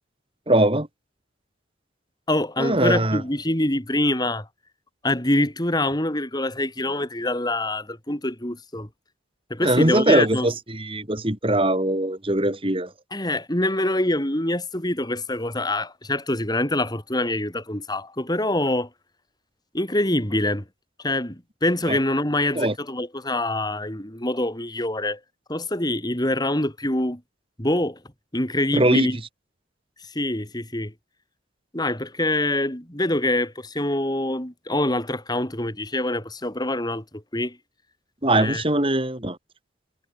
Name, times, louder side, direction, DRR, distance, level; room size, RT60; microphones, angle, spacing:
voice 1, 0.5-0.9 2.6-3.2 9.6-12.9 21.9-22.0 22.6-22.7 28.7-29.1 38.2-39.4, right 1 dB, 30° right, 3.9 m, -21 dB
voice 2, 2.3-4.5 5.0-8.9 9.5-10.5 13.1-18.9 19.7-20.6 21.0-25.2 25.5-27.2 27.6-28.0 28.3-29.2 30.0-30.9 31.7-37.6 38.3-38.6, left 1 dB, 20° left, 4.2 m, -25 dB
head